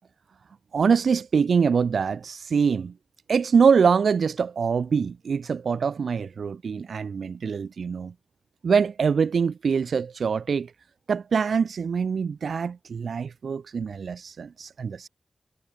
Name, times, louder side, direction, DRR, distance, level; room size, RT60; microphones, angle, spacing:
voice 1, 0.7-2.9 3.3-8.1 8.6-10.7 11.1-15.1, right 6 dB, 85° right, 1.0 m, -24 dB
wide cardioid pair, 100°, 0 cm